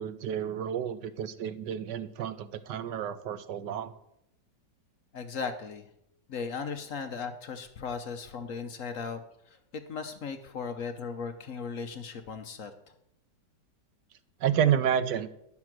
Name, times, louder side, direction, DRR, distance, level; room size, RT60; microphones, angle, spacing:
voice 1, 0.0-3.9 14.4-15.3, right 9 dB, 80° right, 13 dB, 1.3 m, -30 dB
voice 2, 5.1-5.9 6.3-12.7, left 5 dB, 55° left, 8 dB, 1.1 m, -37 dB
10.5 x 7.5 x 6.0 m, 0.79 s
omnidirectional pair, 1.9 m